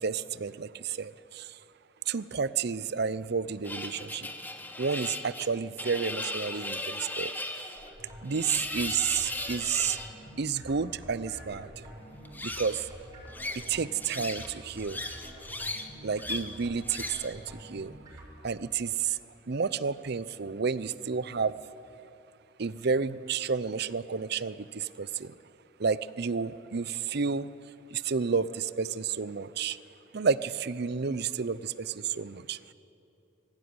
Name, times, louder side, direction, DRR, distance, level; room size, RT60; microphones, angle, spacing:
voice 1, 0.0-1.4 2.1-4.3 4.8-7.3 8.2-10.0 10.4-11.7 12.4-12.8 13.7-15.0 16.0-17.4 17.7-17.9 18.4-19.2 19.5-21.5 22.6-25.3 25.8-27.5 27.9-29.8 30.1-32.6, right 5 dB, 55° right, 17 dB, 0.6 m, -31 dB
sound 1, 3.6-10.1 12.2-12.9 13.3-14.5 14.8-15.9 16.2-16.5 16.8-17.3, left 2 dB, 10° left, 1.2 m, -36 dB
sound 2, 7.7-18.4, equal, 20° right, 6.8 m, -48 dB
22.5 x 15.5 x 9.6 m, 2.8 s
head